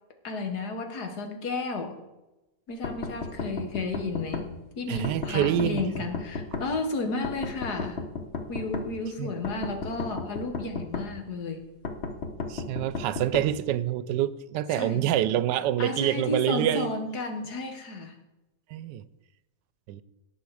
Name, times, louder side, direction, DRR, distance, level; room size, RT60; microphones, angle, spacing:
voice 1, 0.2-2.0 2.7-8.0 8.5-11.7 14.7-15.1 15.8-18.2, left 3 dB, 70° left, 5 dB, 2.0 m, -33 dB
sound 1, 2.8-4.5 5.0-6.7 7.2-8.9 9.4-11.1 11.8-13.5, left 4 dB, 45° left, 1.2 m, -33 dB
voice 2, 4.9-5.8 9.2-9.3 12.5-16.9 18.7-19.1 19.9-20.0, right 12 dB, 85° right, 16 dB, 1.2 m, -26 dB
17.5 x 6.3 x 4.8 m, 1.0 s
omnidirectional pair, 1.8 m